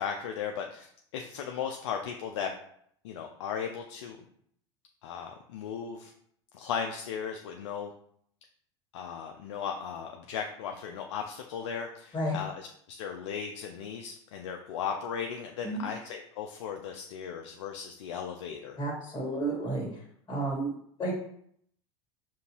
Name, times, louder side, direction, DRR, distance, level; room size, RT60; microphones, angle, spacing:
voice 1, 0.0-2.5 3.0-4.2 5.0-6.1 6.5-7.9 8.9-18.8, left 7 dB, 80° left, 3 dB, 0.4 m, -36 dB
voice 2, 18.8-20.0 20.3-21.1, right 2 dB, 25° left, -3 dB, 1.5 m, -32 dB
5.1 x 2.7 x 2.8 m, 0.67 s
hypercardioid pair, 90°, 15 cm